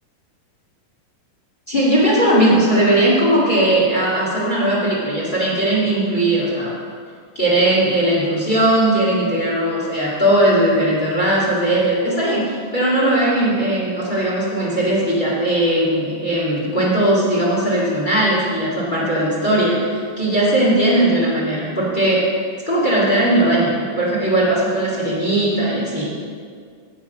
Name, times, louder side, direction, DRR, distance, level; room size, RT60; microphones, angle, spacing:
voice 1, 1.7-6.7 7.3-22.2 22.6-26.1, right 1 dB, 20° left, -7 dB, 1.5 m, -18 dB
11.0 x 7.6 x 5.2 m, 2.1 s
omnidirectional pair, 4.4 m